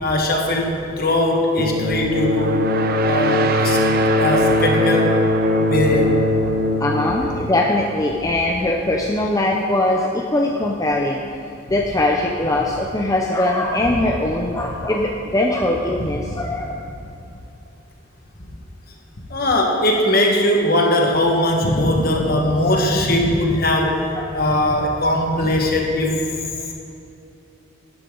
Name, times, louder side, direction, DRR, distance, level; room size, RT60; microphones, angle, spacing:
voice 1, 0.0-2.6 3.0-3.8 4.2-5.2 5.6-6.2 16.3-16.4 19.3-24.0 24.3-26.2, left 1 dB, 45° left, 1 dB, 1.5 m, -19 dB
sound 1, 1.6-8.2, left 1 dB, 45° right, 0.6 m, -20 dB
voice 2, 6.8-11.2 11.7-16.7 24.1-24.3, left 1 dB, 15° left, -1 dB, 0.6 m, -21 dB
12.0 x 11.0 x 3.9 m, 2.7 s
head